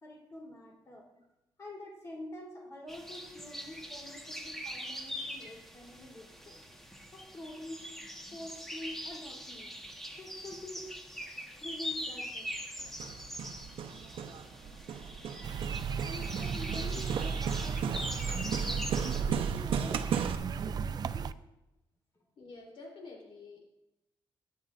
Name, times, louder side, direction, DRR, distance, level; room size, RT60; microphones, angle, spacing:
voice 1, 0.0-1.1 1.6-6.6 7.1-7.9 8.3-9.7 10.2-10.9 11.6-12.5 16.0-20.0 20.3-21.3, left 1 dB, 35° left, -2 dB, 3.5 m, -47 dB
sound 1, 2.9-19.2, equal, 5° left, 1.4 m, -42 dB
Hammer, 12.8-20.4, right 7 dB, 80° right, 0.8 m, -36 dB
sound 2, 15.4-21.3, right 6 dB, 45° right, 0.4 m, -35 dB
voice 2, 22.4-23.7, left 3 dB, 80° left, -2 dB, 3.5 m, -50 dB
23.0 x 10.5 x 2.6 m, 0.92 s
cardioid pair, 135°, 9 cm